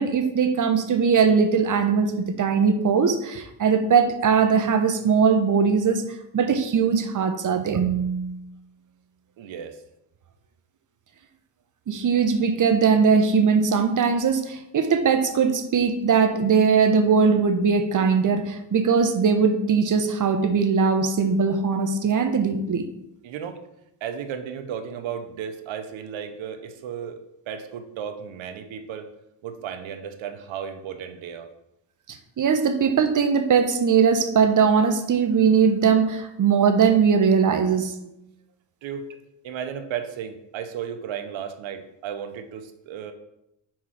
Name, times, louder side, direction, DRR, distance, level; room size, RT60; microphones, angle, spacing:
voice 1, 0.0-2.1 2.4-6.0 6.3-8.4 11.9-22.8 32.1-37.9, right 6 dB, 40° right, 7 dB, 1.0 m, -20 dB
voice 2, 9.4-9.8 23.2-23.6 24.0-27.2 27.5-29.1 29.4-31.5 38.8-39.1 39.4-43.1, right 8 dB, 75° right, 7 dB, 1.0 m, -34 dB
4.9 x 4.6 x 5.8 m, 0.83 s
cardioid pair, 90°, 47 cm